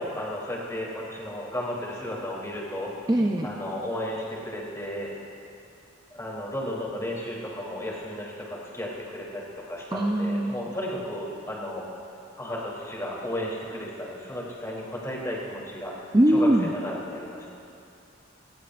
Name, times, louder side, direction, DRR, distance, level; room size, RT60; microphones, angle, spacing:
voice 1, 0.0-2.9 3.4-5.1 6.1-11.9 12.4-17.5, left 1 dB, 15° left, -5 dB, 3.4 m, -34 dB
voice 2, 3.1-3.5 9.9-10.5 16.1-16.7, right 1 dB, 20° right, 1 dB, 0.6 m, -21 dB
23.5 x 19.5 x 2.6 m, 2.6 s
head